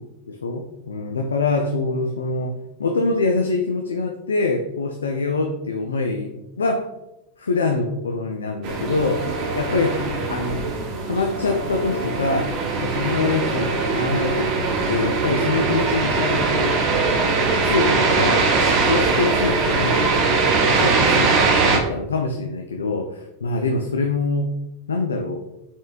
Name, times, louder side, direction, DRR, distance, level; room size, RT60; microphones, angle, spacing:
voice 1, 0.0-6.9 7.4-9.3 9.5-10.7 11.0-16.8 17.6-18.5 18.8-20.3 20.6-24.5 24.9-25.5, left 3 dB, 70° left, 4 dB, 0.3 m, -25 dB
sound 1, 8.6-21.8, right 4 dB, 40° right, 0.7 m, -21 dB
4.1 x 3.7 x 2.4 m, 0.91 s
figure-of-eight pair, 90°, 0 cm